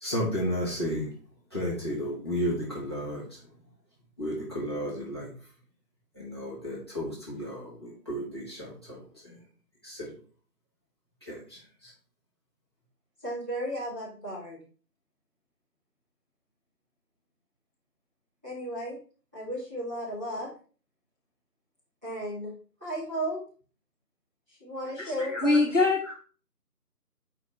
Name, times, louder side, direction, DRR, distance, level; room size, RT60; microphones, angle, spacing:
voice 1, 0.0-1.1 1.5-3.5 4.2-5.3 6.1-9.4 9.8-10.1 11.2-11.9, equal, 15° left, -7 dB, 1.6 m, -33 dB
voice 2, 13.2-14.6 18.4-18.9 19.3-20.5 22.0-22.5 22.8-23.4 24.6-25.6, equal, 10° right, -14 dB, 2.0 m, -34 dB
voice 3, 25.0-26.1, left 3 dB, 50° left, 0 dB, 1.4 m, -24 dB
6.7 x 5.1 x 3.4 m, 0.39 s
figure-of-eight pair, 170°, 48 cm